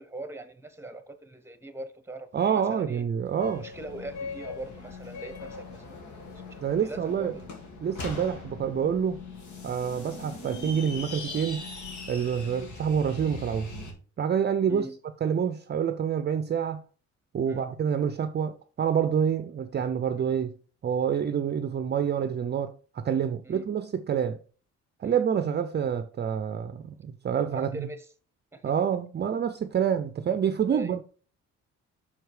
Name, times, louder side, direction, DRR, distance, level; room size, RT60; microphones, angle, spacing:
voice 1, 0.0-3.1 3.5-7.5 9.9-10.1 12.4-12.6 14.7-15.0 17.4-17.7 23.4-23.7 25.0-25.3 27.5-28.1 28.5-28.7 30.7-30.9, right 2 dB, 10° right, 1.0 m, -42 dB
voice 2, 2.3-3.6 6.6-7.4 7.8-9.2 9.6-11.7 12.1-13.8 14.2-14.9 15.2-16.8 17.3-20.5 20.8-24.4 25.0-27.9 28.6-31.0, right 8 dB, 35° right, 0.5 m, -27 dB
sound 1, 3.4-13.9, left 3 dB, 70° left, 2.1 m, -40 dB
5.8 x 4.7 x 4.7 m
cardioid pair, 90°, 30 cm